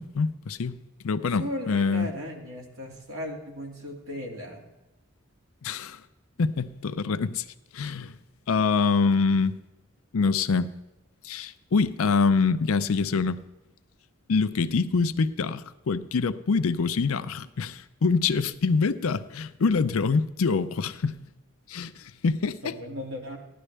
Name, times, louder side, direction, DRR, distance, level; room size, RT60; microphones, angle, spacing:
voice 1, 0.0-2.1 5.6-6.0 6.4-7.4 7.7-8.1 8.5-9.6 10.1-10.7 11.2-13.4 14.3-21.2 21.7-22.7, left 4 dB, 75° left, 0.5 m, -25 dB
voice 2, 1.4-4.6 22.6-23.4, left 1 dB, 75° right, 2.3 m, -36 dB
15.5 x 11.0 x 3.3 m
head